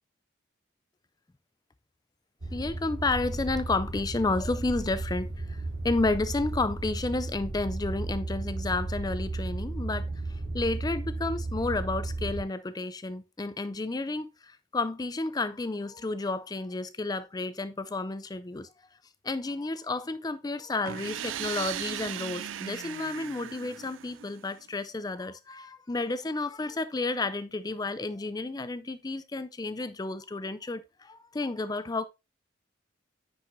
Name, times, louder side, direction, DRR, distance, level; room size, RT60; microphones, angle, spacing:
sound 1, 2.4-12.4, right 2 dB, 55° right, 1.4 m, -34 dB
voice 1, 2.5-18.7 19.2-32.1, left 3 dB, 20° left, 0.4 m, -31 dB
sound 2, 20.8-24.6, right 10 dB, 80° right, 0.4 m, -37 dB
9.8 x 4.8 x 2.6 m
head